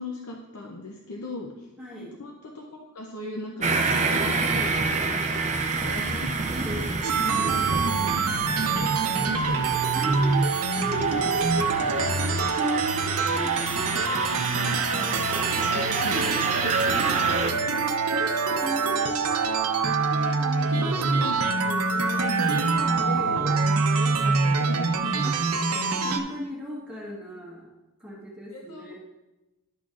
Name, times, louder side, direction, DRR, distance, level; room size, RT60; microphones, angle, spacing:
voice 1, 0.0-6.3 7.1-7.2 8.0-10.1 11.9-12.0 13.9-16.4 16.6-17.0 17.4-17.6 20.4-25.0 28.5-29.0, left 2 dB, 70° left, 0 dB, 0.7 m, -40 dB
voice 2, 1.8-2.1 6.5-6.9 7.2-8.1 9.9-13.8 16.0-16.4 18.6-19.7 20.1-21.4 23.1-23.7 25.2-27.7 28.0-29.0, equal, 5° right, -6 dB, 1.2 m, -37 dB
sound 1, 3.6-17.5, right 4 dB, 30° right, 0.5 m, -28 dB
sound 2, 7.0-26.2, right 4 dB, 75° right, 0.6 m, -25 dB
11.0 x 6.0 x 2.5 m, 1.0 s
head